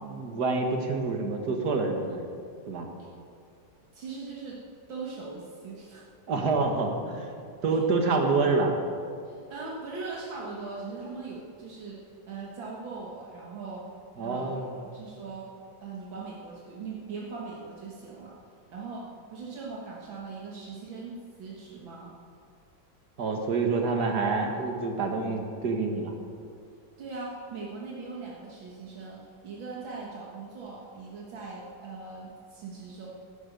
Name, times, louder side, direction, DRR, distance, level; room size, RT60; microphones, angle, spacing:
voice 1, 0.0-2.2 2.7-2.9 6.3-7.3 7.6-8.7 14.2-14.7 23.2-26.1, right 3 dB, 55° right, 3 dB, 1.9 m, -27 dB
voice 2, 3.9-4.6 4.9-6.0 7.7-7.8 9.2-13.8 14.2-15.5 15.8-18.4 18.7-19.0 19.3-22.1 27.0-33.1, right 4 dB, 75° right, -3 dB, 2.2 m, -40 dB
14.0 x 11.0 x 5.2 m, 2.5 s
omnidirectional pair, 2.1 m